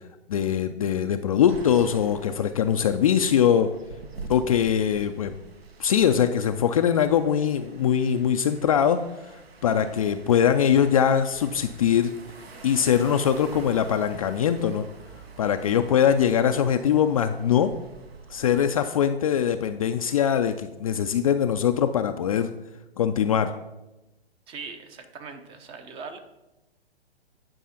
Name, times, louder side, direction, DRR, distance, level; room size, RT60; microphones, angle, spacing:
voice 1, 0.3-3.7 4.3-5.3 5.8-9.0 9.6-12.1 12.6-14.9 15.4-17.7 18.3-22.5 23.0-23.5, left 8 dB, 35° left, 7 dB, 0.4 m, -22 dB
sound 1, 1.5-18.6, right 4 dB, 70° right, 1.4 m, -45 dB
voice 2, 24.5-26.2, right 5 dB, 15° right, 8 dB, 0.6 m, -40 dB
10.0 x 4.8 x 5.7 m, 0.98 s
figure-of-eight pair, 125°, 32 cm